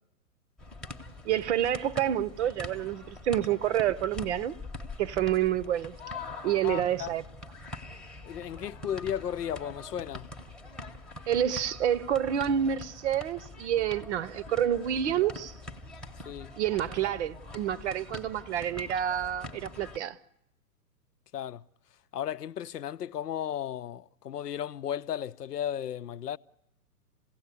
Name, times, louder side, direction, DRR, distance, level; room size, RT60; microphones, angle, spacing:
sound 1, 0.6-20.0, left 1 dB, ahead, 0.9 m, -44 dB
voice 1, 1.2-4.5 5.0-5.9 6.4-7.2 11.3-15.5 16.6-20.2, right 10 dB, 45° right, 0.8 m, -28 dB
voice 2, 6.6-7.1 8.2-10.3 16.2-16.5 21.3-21.6 22.1-26.4, left 10 dB, 80° left, 0.7 m, -35 dB
27.5 x 17.0 x 8.3 m
hypercardioid pair, 130°, 47 cm